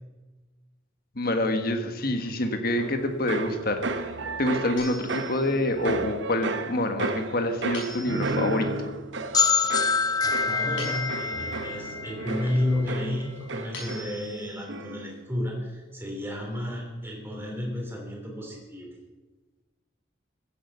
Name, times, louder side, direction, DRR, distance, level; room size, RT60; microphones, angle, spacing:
voice 1, 1.1-3.9 4.4-8.7, left 1 dB, 50° left, 6 dB, 1.5 m, -26 dB
sound 1, 2.8-14.4 14.7-15.2, right 3 dB, 70° right, 0.9 m, -34 dB
sound 2, 4.8-5.7 7.7-8.6 10.8-11.7 13.7-14.7, left 2 dB, 85° left, 5.3 m, -42 dB
sound 3, 9.3-13.0, left 5 dB, 20° left, 0.5 m, -26 dB
voice 2, 10.2-19.0, left 1 dB, 10° right, -1 dB, 3.2 m, -32 dB
15.0 x 9.3 x 5.5 m, 1.3 s
head